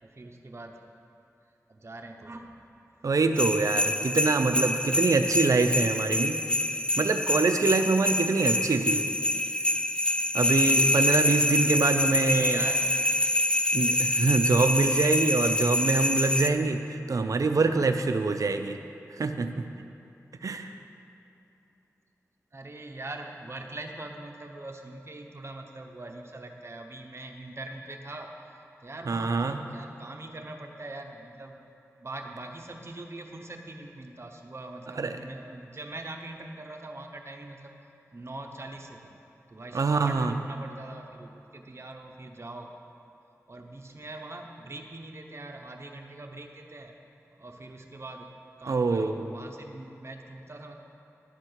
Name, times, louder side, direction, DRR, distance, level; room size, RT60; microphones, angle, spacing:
voice 1, 0.0-0.8 1.7-2.6 3.0-3.1 12.2-12.9 22.5-28.3 28.8-31.6 32.0-37.8 38.1-39.1 39.5-42.7 43.5-46.9 47.3-48.3 48.6-50.8, right 2 dB, 50° right, 3 dB, 0.9 m, -42 dB
voice 2, 3.0-6.4 7.0-9.0 10.3-12.6 13.7-18.8 19.2-19.7 20.4-20.7 29.1-29.6 35.0-35.2 39.7-40.3 48.7-49.1, right 3 dB, 80° right, 7 dB, 0.5 m, -25 dB
sound 1, 3.4-16.5, left 1 dB, 20° left, 0.4 m, -26 dB
11.5 x 4.5 x 8.0 m, 2.8 s
wide cardioid pair, 60°, 6 cm